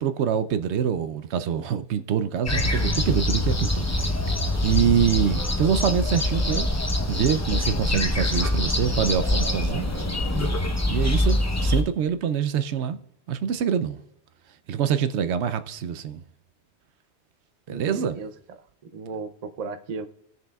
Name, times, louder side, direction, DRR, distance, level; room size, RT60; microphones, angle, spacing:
voice 1, 0.0-4.3 4.6-6.7 7.1-9.8 10.9-13.0 13.3-14.0 14.7-16.2 17.7-18.2, right 8 dB, 75° right, 0.9 m, -25 dB
sound 1, 2.5-11.8, left 1 dB, 15° left, 0.8 m, -24 dB
voice 2, 17.7-18.3 18.9-20.1, right 4 dB, 45° right, 0.6 m, -35 dB
20.0 x 6.8 x 2.3 m
omnidirectional pair, 1.2 m